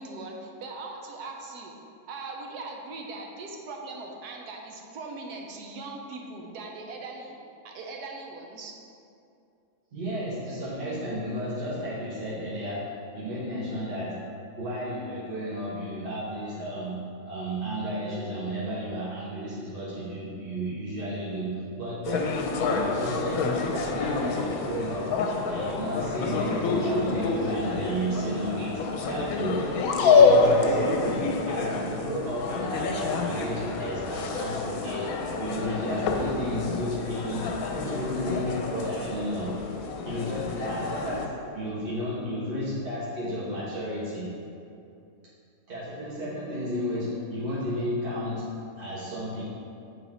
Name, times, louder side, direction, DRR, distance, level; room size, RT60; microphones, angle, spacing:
voice 1, 0.0-1.7 2.1-7.4 7.6-8.7, right 3 dB, 75° right, 1 dB, 1.3 m, -40 dB
voice 2, 9.9-25.2 25.5-29.6 29.9-39.6 40.0-44.3 45.7-49.4, equal, 35° right, -10 dB, 1.3 m, -33 dB
sound 1, 22.0-41.3, left 4 dB, 70° left, 1.1 m, -27 dB
8.3 x 4.0 x 4.3 m, 2.6 s
omnidirectional pair, 1.7 m